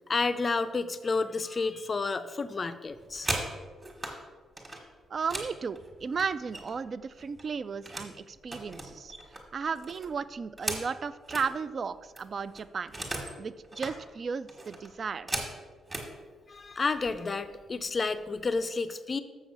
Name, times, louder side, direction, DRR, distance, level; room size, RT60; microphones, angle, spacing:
voice 1, 0.1-3.3 16.5-19.2, left 4 dB, 25° left, 11 dB, 0.4 m, -30 dB
sound 1, 2.9-4.2 4.6-6.9 7.2-8.1 8.5-11.5 11.9-12.0 12.2-13.4 13.6-14.0 14.5-16.1 16.9-17.1 17.5-17.8 18.1-18.6, right 2 dB, 15° right, 1.4 m, -38 dB
voice 2, 5.1-9.1 9.5-13.0 13.4-15.4, right 5 dB, 35° right, 15 dB, 0.3 m, -34 dB
7.1 x 6.5 x 6.1 m, 1.4 s
cardioid pair, 170°, 0 cm